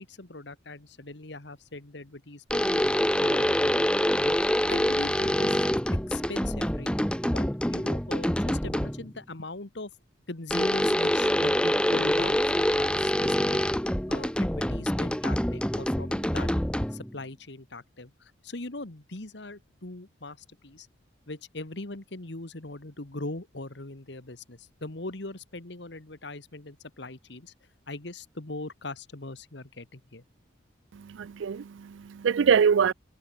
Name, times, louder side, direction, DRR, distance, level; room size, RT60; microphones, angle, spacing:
voice 1, 0.0-2.9 3.2-3.9 4.3-4.4 4.7-6.9 7.3-9.9 10.3-13.6 14.1-16.5 16.9-20.4 20.6-20.9 21.3-27.5 27.9-30.2, left 2 dB, 60° left, 1.7 m, -40 dB
sound 1, 2.5-9.1 10.5-17.1, equal, 5° left, 1.1 m, -26 dB
voice 2, 31.1-32.9, right 6 dB, 75° right, 0.4 m, -24 dB
head